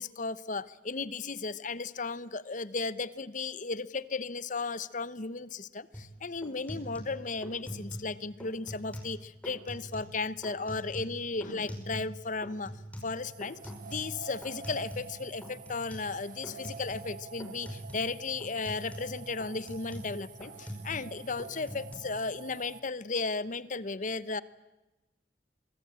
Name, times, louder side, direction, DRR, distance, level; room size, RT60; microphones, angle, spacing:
voice 1, 0.0-12.7 13.0-13.6 13.9-24.4, left 4 dB, 45° left, 17 dB, 0.9 m, -35 dB
sound 1, 5.9-6.1 6.4-8.1 8.4-9.2 9.4-10.1 10.4-12.2 12.4-15.1 15.4-16.1 16.4-17.1 17.4-18.1 18.4-21.1 21.4-21.9, equal, 10° left, 5.7 m, -43 dB
sound 2, 13.2-22.8, right 4 dB, 50° right, 1.7 m, -48 dB
24.5 x 24.0 x 8.9 m, 1.1 s
head